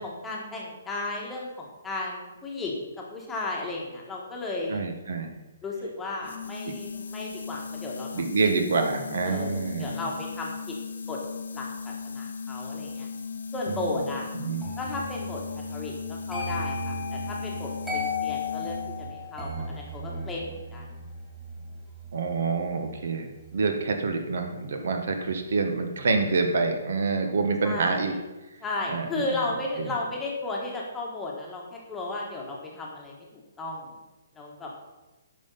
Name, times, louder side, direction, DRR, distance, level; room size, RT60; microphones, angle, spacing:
voice 1, 0.0-4.8 5.6-8.3 9.2-10.7 11.1-11.2 11.5-13.1 13.5-14.3 14.8-21.0 27.6-28.1 28.6-33.9 34.3-34.7, left 2 dB, 5° left, -3 dB, 1.4 m, -34 dB
voice 2, 4.7-5.4 8.1-10.1 13.7-14.0 14.4-14.6 22.1-28.1 28.9-29.2 29.8-29.9, right 4 dB, 60° right, 5 dB, 1.3 m, -27 dB
sound 1, 6.2-19.1, left 5 dB, 80° left, 1.6 m, -37 dB
sound 2, 14.6-25.6 25.9-26.2, left 2 dB, 10° right, 2.2 m, -37 dB
9.8 x 5.7 x 5.5 m, 1.1 s
hypercardioid pair, 170°, 0 cm